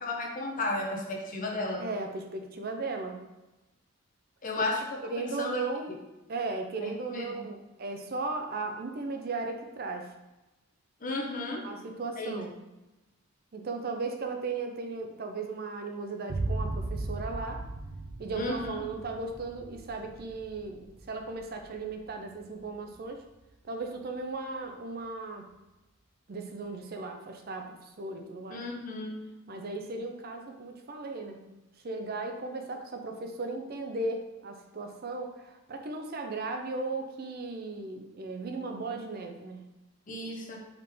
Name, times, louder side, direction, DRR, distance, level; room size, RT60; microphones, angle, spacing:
voice 1, 0.0-1.9 4.4-4.8 5.2-5.6 6.8-7.4 11.0-11.7 12.2-12.3 18.3-18.8 28.5-29.2 40.1-40.6, left 2 dB, 40° left, 0 dB, 0.7 m, -34 dB
voice 2, 1.8-3.2 5.0-5.9 6.3-10.1 11.6-12.5 13.5-17.6 18.2-23.2 23.6-25.5 26.3-28.7 29.5-31.4 31.8-39.6, right 3 dB, 45° right, 4 dB, 0.5 m, -36 dB
sound 1, 16.3-23.7, right 2 dB, 90° right, 0.6 m, -38 dB
4.8 x 3.2 x 3.4 m, 1.0 s
head